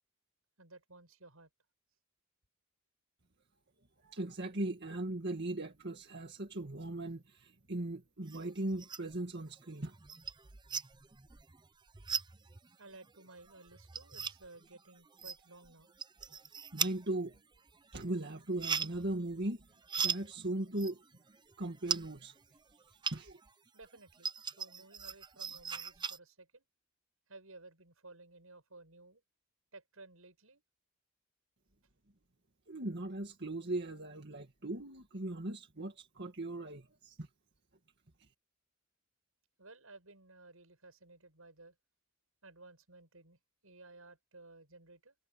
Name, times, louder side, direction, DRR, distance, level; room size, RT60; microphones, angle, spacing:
voice 1, 0.6-1.5 12.8-15.9 23.7-26.6 27.3-29.2 29.7-30.6 39.6-41.8 42.4-45.1, right 2 dB, 85° right, 7.8 m, -56 dB
voice 2, 4.0-9.9 16.7-17.4 17.9-19.7 20.0-21.0 21.6-22.4 23.1-23.4 32.7-37.3, right 1 dB, 55° right, 2.0 m, -38 dB
sound 1, 8.3-9.2 9.6-23.5 23.8-26.2, right 6 dB, 20° right, 0.7 m, -40 dB
head